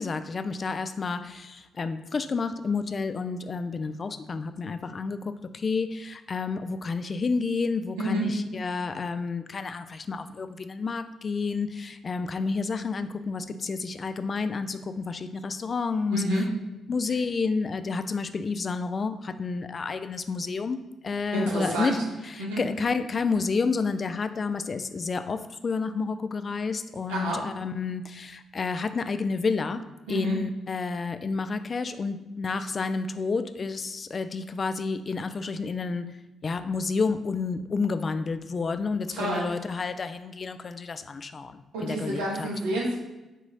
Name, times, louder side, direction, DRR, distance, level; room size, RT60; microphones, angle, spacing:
voice 1, 0.0-16.2 16.9-20.8 21.0-22.0 22.3-29.8 30.1-36.0 36.4-42.5, left 4 dB, 45° left, 11 dB, 0.3 m, -30 dB
voice 2, 16.1-16.4 21.3-22.0 22.4-22.6 27.1-27.4 30.1-30.4 39.1-39.4 41.7-43.0, right 1 dB, 85° right, -4 dB, 1.2 m, -28 dB
4.4 x 3.1 x 3.9 m, 1.1 s
hypercardioid pair, 45°, 0 cm